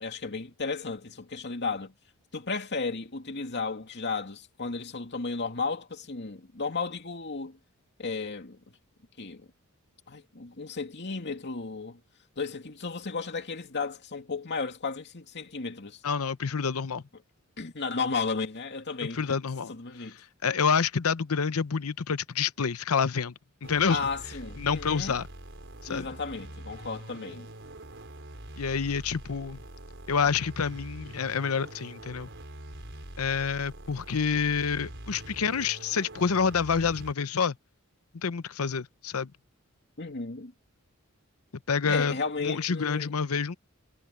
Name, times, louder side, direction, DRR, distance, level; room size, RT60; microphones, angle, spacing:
voice 1, 0.0-1.9 2.3-7.6 8.0-8.6 9.2-9.5 10.1-12.0 12.4-16.0 17.6-19.4 19.7-20.2 23.9-25.2 25.9-27.5 40.0-40.5 41.9-43.1, left 4 dB, 55° left, 2.5 m, -34 dB
voice 2, 16.0-17.0 19.1-19.7 20.4-23.3 23.6-24.0 24.6-25.3 25.9-26.0 28.6-29.6 30.1-32.3 33.2-37.6 38.2-39.3 41.7-43.6, left 6 dB, 80° left, 0.7 m, -28 dB
sound 1, 23.6-37.1, right 1 dB, 60° right, 4.7 m, -44 dB
head